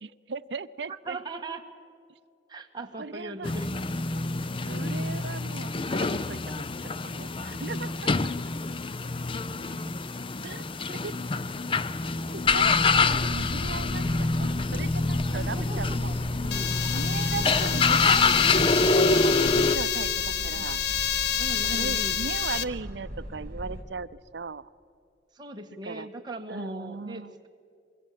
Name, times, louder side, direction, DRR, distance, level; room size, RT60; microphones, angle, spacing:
voice 1, 0.0-1.2 3.0-3.5 4.6-6.7 7.0-8.1 10.4-11.2 12.3-16.1 16.9-20.8 21.6-24.7 25.8-26.1 26.5-27.3, right 4 dB, 70° right, 14 dB, 0.6 m, -38 dB
voice 2, 1.1-1.7 2.5-3.7 7.9-8.0 15.3-16.9 20.5-20.7 21.4-22.2 25.3-27.5, right 2 dB, 25° right, 2 dB, 1.7 m, -40 dB
sound 1, 3.4-19.8, left 3 dB, 30° left, 0.5 m, -26 dB
sound 2, 12.4-23.8, equal, 50° right, 3.7 m, -39 dB
sound 3, 16.5-22.6, left 9 dB, 65° left, 0.7 m, -29 dB
24.5 x 23.0 x 7.6 m, 2.4 s
head